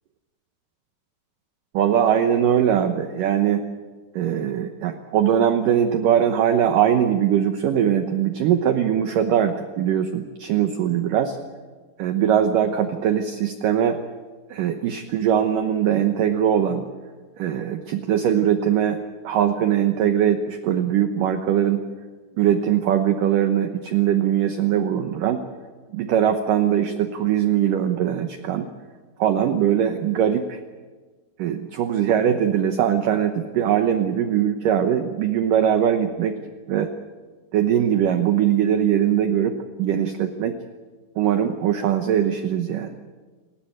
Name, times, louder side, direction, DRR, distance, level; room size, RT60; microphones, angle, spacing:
voice 1, 1.7-3.6 4.2-11.4 12.0-14.0 14.5-16.9 17.4-19.0 19.2-21.8 22.4-25.4 25.9-28.7 29.2-30.6 31.4-36.4 36.7-36.9 37.5-40.6 41.2-42.9, right 9 dB, 70° right, 7 dB, 2.1 m, -21 dB
28.5 x 14.5 x 9.1 m, 1.4 s
omnidirectional pair, 5.0 m